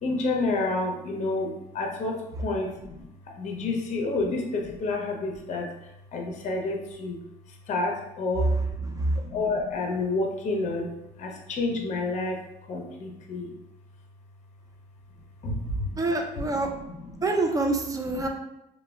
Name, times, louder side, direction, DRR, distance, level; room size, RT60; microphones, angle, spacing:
voice 1, 0.0-13.5 15.1-16.0 16.4-17.3 18.1-18.3, left 2 dB, 45° left, 1 dB, 0.5 m, -30 dB
voice 2, 16.0-16.7 17.2-18.3, right 2 dB, 20° right, 3 dB, 0.3 m, -26 dB
3.1 x 2.1 x 2.2 m, 0.87 s
cardioid pair, 110°, 17 cm